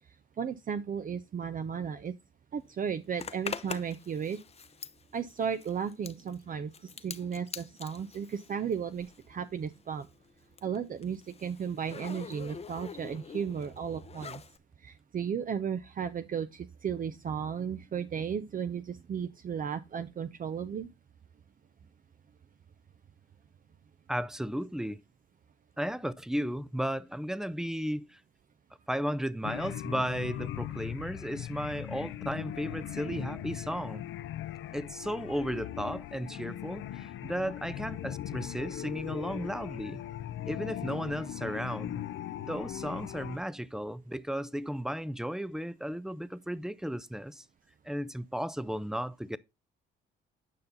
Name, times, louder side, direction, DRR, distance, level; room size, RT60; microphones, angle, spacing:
voice 1, 0.4-2.1 2.5-4.4 5.1-6.7 7.0-10.1 10.6-14.4 14.8-20.9, right 7 dB, 45° right, 0.7 m, -34 dB
Zipper (clothing), 3.2-9.3 9.6-14.6, left 6 dB, 30° left, 0.7 m, -44 dB
voice 2, 24.1-25.0 25.8-28.2 28.9-34.0 34.7-40.0 40.5-42.0 42.4-47.4 47.8-49.4, equal, 5° right, 0.6 m, -34 dB
sound 1, 29.4-43.4, left 12 dB, 75° left, 0.6 m, -39 dB
9.3 x 5.6 x 3.9 m
cardioid pair, 90°, 20 cm